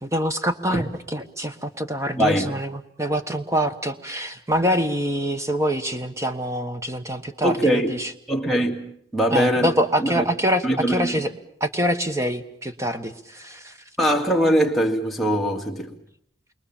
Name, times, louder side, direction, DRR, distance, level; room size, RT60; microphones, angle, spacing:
voice 1, 0.0-8.1 9.3-11.3 11.6-13.8, equal, 15° right, 1.3 m, -25 dB
voice 2, 2.2-2.6 7.4-8.0 8.3-10.2 10.6-11.2 14.0-16.0, equal, ahead, 2.1 m, -22 dB
29.0 x 23.0 x 7.3 m
head